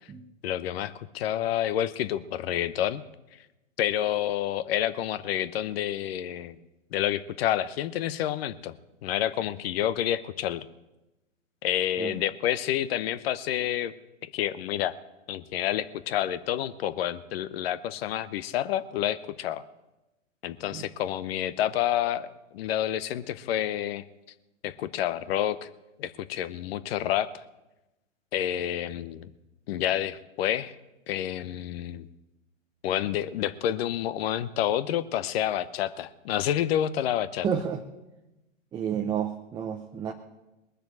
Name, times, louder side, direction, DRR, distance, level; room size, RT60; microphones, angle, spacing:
voice 1, 0.4-3.0 3.8-6.6 6.9-8.8 9.0-10.6 11.6-13.9 14.2-14.9 15.3-19.6 20.4-24.0 24.6-25.7 26.0-27.4 28.3-29.3 29.7-30.7 31.1-32.1 32.8-37.5, left 11 dB, 50° left, 15 dB, 0.9 m, -29 dB
voice 2, 37.4-37.8 38.7-40.1, right 8 dB, 10° right, 4 dB, 0.5 m, -30 dB
20.0 x 6.8 x 7.7 m, 1.0 s
hypercardioid pair, 120°, 39 cm